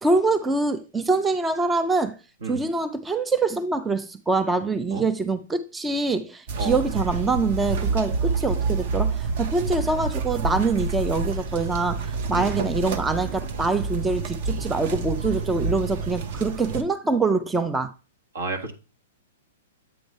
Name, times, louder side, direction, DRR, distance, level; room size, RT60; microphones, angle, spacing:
voice 1, 0.0-2.2 2.4-17.9, right 3 dB, 10° right, 0.3 m, -24 dB
sound 1, 6.5-16.8, right 4 dB, 45° right, 0.7 m, -28 dB
voice 2, 18.3-18.7, right 4 dB, 75° right, 1.6 m, -31 dB
7.8 x 3.2 x 5.3 m
hypercardioid pair, 160°, 0 cm